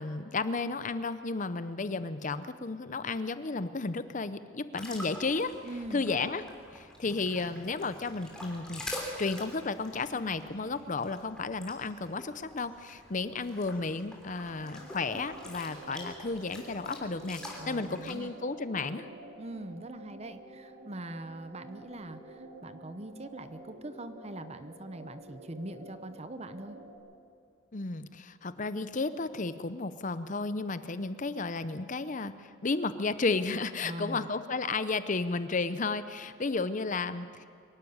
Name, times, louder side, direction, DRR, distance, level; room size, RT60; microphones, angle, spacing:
voice 1, 0.0-5.5 5.9-6.4 6.7-8.8 9.2-19.1 27.7-37.5, left 3 dB, 40° left, 13 dB, 0.7 m, -33 dB
sound 1, 4.7-18.1, left 1 dB, 5° left, 3.2 m, -46 dB
voice 2, 5.6-6.3 17.6-18.3 19.4-26.8 33.8-34.3, right 1 dB, 30° right, 11 dB, 0.9 m, -42 dB
sound 2, 14.5-27.0, right 1 dB, 50° right, 3.5 m, -50 dB
24.0 x 12.0 x 9.5 m, 2.3 s
head